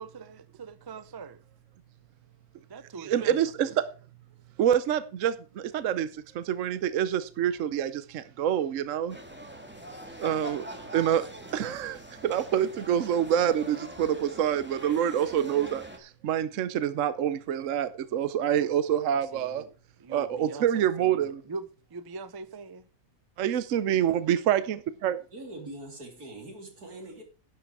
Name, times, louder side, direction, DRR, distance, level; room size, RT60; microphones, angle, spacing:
voice 1, 0.0-1.4 2.7-3.4 19.1-19.7 20.0-21.6 21.9-22.8, right 4 dB, 35° right, 0.3 m, -42 dB
voice 2, 3.0-3.9 4.6-9.2 10.2-10.7 10.9-19.6 20.1-21.4 23.4-25.2, right 10 dB, 65° right, 1.0 m, -27 dB
sound 1, 9.1-16.0, equal, 5° right, 1.9 m, -43 dB
voice 3, 25.3-27.2, right 1 dB, 90° right, 3.6 m, -42 dB
11.0 x 8.7 x 4.7 m
omnidirectional pair, 1.6 m